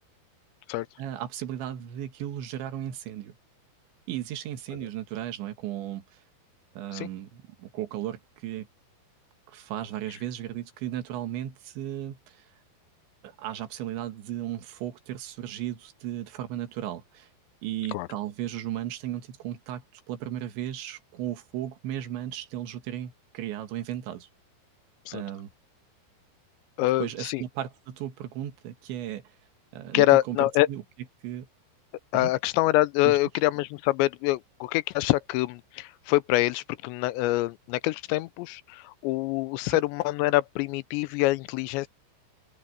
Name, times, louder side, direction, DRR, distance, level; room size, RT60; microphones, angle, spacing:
voice 1, 1.0-3.4 4.1-6.2 6.8-8.7 9.5-12.5 13.2-17.3 17.6-24.3 25.1-25.5 27.0-29.2 29.7-30.8 31.2-31.5 32.1-32.3 33.0-33.2, right 12 dB, 90° right, 4.0 m, -35 dB
voice 2, 26.8-27.4 29.9-30.7 32.1-41.9, left 18 dB, 85° left, 3.0 m, -25 dB
open air
omnidirectional pair, 5.1 m